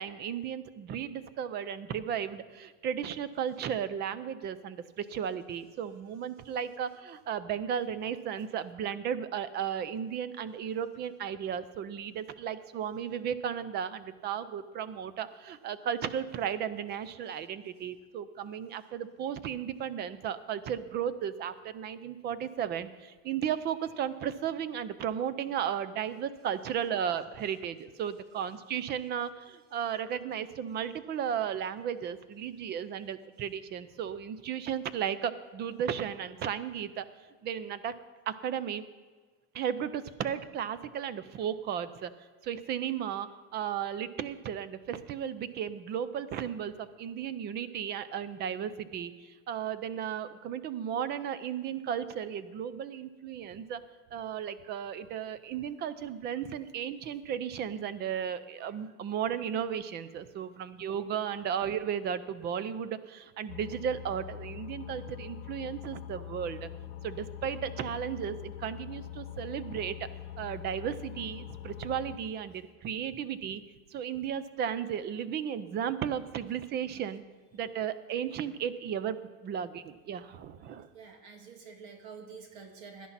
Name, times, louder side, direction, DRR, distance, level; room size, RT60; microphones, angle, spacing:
voice 1, 0.0-37.1 37.4-38.0 38.3-38.8 39.5-42.1 42.4-53.8 54.1-66.7 67.0-70.1 70.4-73.6 73.9-77.2 77.5-80.9, right 8 dB, 30° right, 14 dB, 0.5 m, -35 dB
sound 1, 63.5-72.2, left 11 dB, 65° left, 1.1 m, -43 dB
voice 2, 80.9-83.1, right 5 dB, 50° right, 4 dB, 2.0 m, -48 dB
17.0 x 11.0 x 4.1 m, 1.4 s
supercardioid pair, 160°, 37 cm